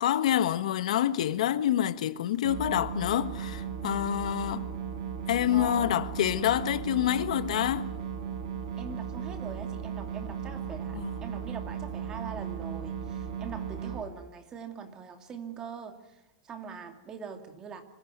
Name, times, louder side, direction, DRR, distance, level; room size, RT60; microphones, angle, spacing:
voice 1, 0.0-4.7 5.3-7.9 10.9-11.3, left 11 dB, 75° left, 1.5 m, -27 dB
sound 1, 2.4-14.0, right 7 dB, 70° right, 7.6 m, -36 dB
voice 2, 5.5-5.9 8.8-17.8, right 6 dB, 20° right, 2.5 m, -42 dB
25.5 x 16.0 x 9.5 m
supercardioid pair, 170°, 4 cm